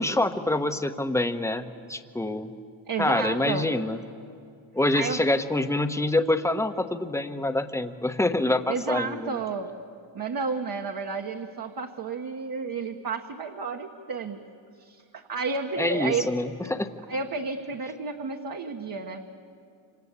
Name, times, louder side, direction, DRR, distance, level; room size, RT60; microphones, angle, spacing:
voice 1, 0.0-2.5 3.0-4.0 4.7-9.4 15.8-16.9, left 2 dB, 5° left, 8 dB, 1.0 m, -26 dB
voice 2, 2.9-3.7 4.9-5.2 8.7-9.7 10.1-14.4 14.8-16.3 17.1-19.2, right 5 dB, 45° right, 2 dB, 1.5 m, -31 dB
26.5 x 26.5 x 8.2 m, 2.4 s
cardioid pair, 135°, 48 cm